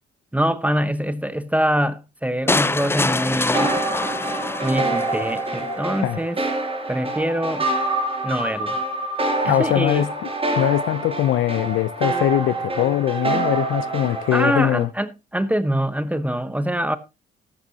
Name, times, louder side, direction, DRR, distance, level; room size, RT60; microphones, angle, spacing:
voice 1, 0.3-3.7 4.6-6.4 6.9-7.8 8.2-8.8 9.4-10.1 14.3-17.0, equal, 5° right, 0.9 m, -24 dB
sound 1, 2.5-5.5, left 2 dB, 10° left, 0.6 m, -24 dB
sound 2, 3.5-14.8, right 2 dB, 25° right, 5.6 m, -26 dB
voice 2, 9.4-10.1 10.6-14.9, left 13 dB, 80° left, 0.7 m, -21 dB
14.0 x 11.5 x 2.9 m
cardioid pair, 90°, 20 cm